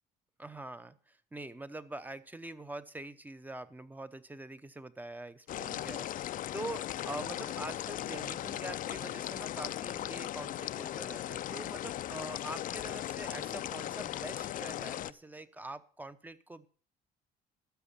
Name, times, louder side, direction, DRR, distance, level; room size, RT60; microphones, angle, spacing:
voice 1, 0.4-16.7, right 2 dB, 10° right, 13 dB, 0.8 m, -44 dB
sound 1, 5.5-15.1, left 12 dB, 55° left, 0.5 m, -38 dB
13.0 x 7.0 x 6.7 m, 0.42 s
cardioid pair, 110°, 17 cm